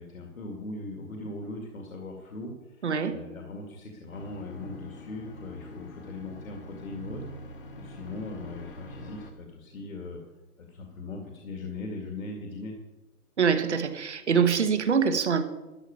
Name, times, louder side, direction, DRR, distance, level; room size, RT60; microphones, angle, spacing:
voice 1, 0.0-7.2 7.7-10.2 10.6-12.7, left 2 dB, 60° left, 2.3 m, -39 dB
voice 2, 2.8-3.2 13.4-15.4, right 6 dB, 45° right, 1.2 m, -24 dB
sound 1, 4.1-9.3, equal, 35° left, 1.4 m, -44 dB
13.0 x 5.9 x 9.5 m
hypercardioid pair, 170°, 46 cm